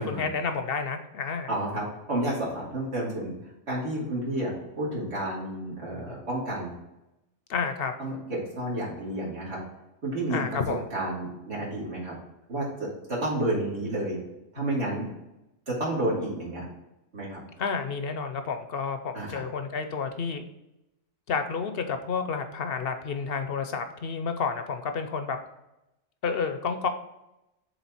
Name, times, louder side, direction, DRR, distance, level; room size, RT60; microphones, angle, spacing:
voice 1, 0.0-1.5 7.5-7.9 10.3-10.8 17.6-20.4 21.3-25.4 26.2-26.9, left 5 dB, 60° left, 7 dB, 0.8 m, -30 dB
voice 2, 1.5-3.3 3.7-6.7 8.0-9.6 10.0-10.6 10.9-12.1 12.5-14.2 14.5-15.1 15.7-16.6 17.1-17.4 19.1-19.4, right 1 dB, 65° right, -5 dB, 2.7 m, -30 dB
7.3 x 3.6 x 4.2 m, 0.91 s
omnidirectional pair, 1.2 m